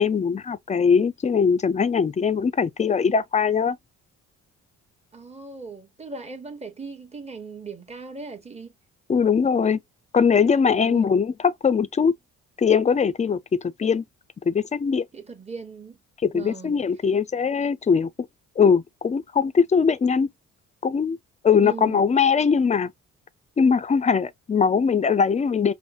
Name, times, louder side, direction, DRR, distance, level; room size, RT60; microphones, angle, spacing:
voice 1, 0.0-3.8 9.1-9.8 10.1-12.1 12.6-14.0 14.5-15.0 16.2-18.1 18.6-20.3 20.8-21.2 21.4-22.9 23.6-25.7, left 6 dB, 25° left, 0.4 m, -21 dB
voice 2, 5.1-8.7 10.8-11.0 15.1-16.0 16.3-16.8 21.6-22.0, right 4 dB, 20° right, 1.2 m, -38 dB
5.4 x 2.1 x 2.3 m
cardioid pair, 90°, 30 cm